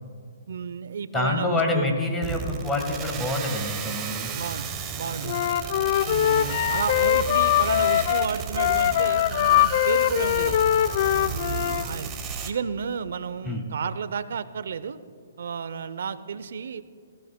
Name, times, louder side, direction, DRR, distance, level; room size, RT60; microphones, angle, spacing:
voice 1, 0.5-1.9 4.3-4.7 4.9-5.5 6.0-10.6 11.1-12.1 12.4-15.0 15.4-16.8, right 6 dB, 65° right, 14 dB, 0.6 m, -32 dB
voice 2, 1.1-4.3 13.4-13.6, left 2 dB, 10° left, 3 dB, 1.4 m, -27 dB
sound 1, 2.2-12.5, right 6 dB, 20° right, 0.9 m, -33 dB
Wind instrument woodwind instrument, 5.2-11.9, left 12 dB, 45° left, 0.4 m, -22 dB
18.5 x 16.0 x 2.2 m, 2.3 s
hypercardioid pair, 155°, 0 cm